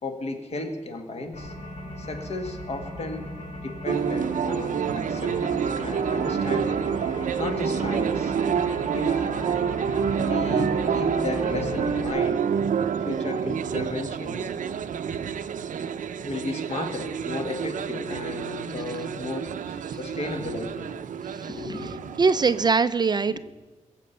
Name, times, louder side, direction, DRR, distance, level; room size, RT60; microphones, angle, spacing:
voice 1, 0.0-1.5 2.0-3.3 3.6-6.8 7.4-8.3 8.9-9.2 10.2-12.4 13.0-14.5 16.2-20.9 21.4-22.0 23.3-23.4, left 2 dB, 55° left, 5 dB, 1.8 m, -34 dB
sound 1, 1.3-12.1, left 1 dB, 75° left, 2.7 m, -38 dB
sound 2, 3.9-22.7, right 7 dB, 80° right, 0.6 m, -28 dB
voice 2, 22.2-23.4, right 4 dB, 35° right, 13 dB, 0.4 m, -22 dB
22.0 x 7.6 x 6.8 m, 1.2 s
wide cardioid pair, 180°, 13 cm